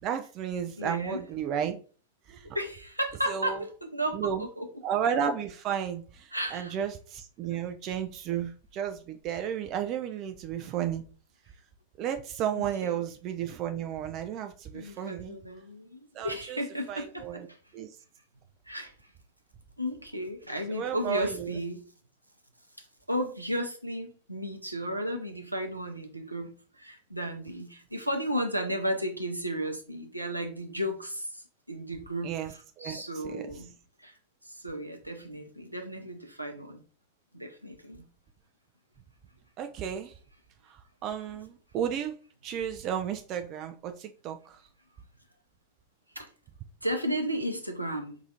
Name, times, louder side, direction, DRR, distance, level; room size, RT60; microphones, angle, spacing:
voice 1, 0.0-1.8 2.3-2.5 3.3-3.6 4.1-4.5 4.8-11.0 12.0-15.4 16.1-16.6 16.9-17.5 17.7-17.9 20.7-21.6 32.2-33.5 39.6-40.1 40.7-42.2 42.4-44.6, right 9 dB, 35° right, 7 dB, 0.3 m, -33 dB
voice 2, 0.8-1.2 2.5-4.7 6.3-6.7 12.6-13.0 14.7-17.4 18.7-18.9 19.8-21.8 23.1-32.3 32.8-33.7 34.0-34.1 34.5-36.8 37.3-38.0 46.2-46.3 46.8-48.2, equal, 85° right, 5 dB, 0.6 m, -34 dB
4.8 x 2.4 x 2.7 m, 0.39 s
figure-of-eight pair, 90°, 0 cm